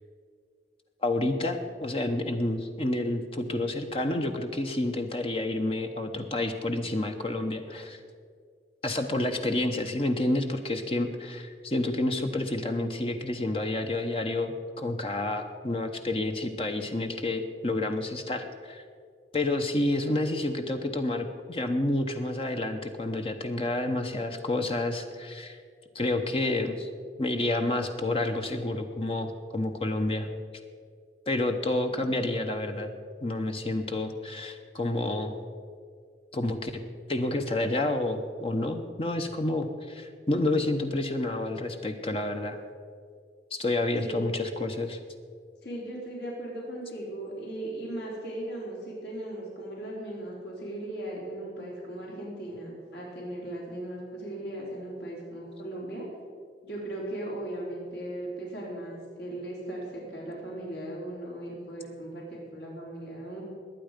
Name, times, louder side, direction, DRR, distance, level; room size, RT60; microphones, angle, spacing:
voice 1, 1.0-8.0 8.8-18.8 19.3-25.6 25.9-26.9 27.2-30.3 31.3-32.9 33.2-35.3 36.3-36.8 37.1-42.6 43.5-45.0, left 2 dB, 35° left, 5 dB, 0.8 m, -29 dB
voice 2, 44.0-44.3 45.6-56.1 56.6-63.4, right 1 dB, 70° left, -3 dB, 3.9 m, -37 dB
21.0 x 9.1 x 5.1 m, 2.1 s
head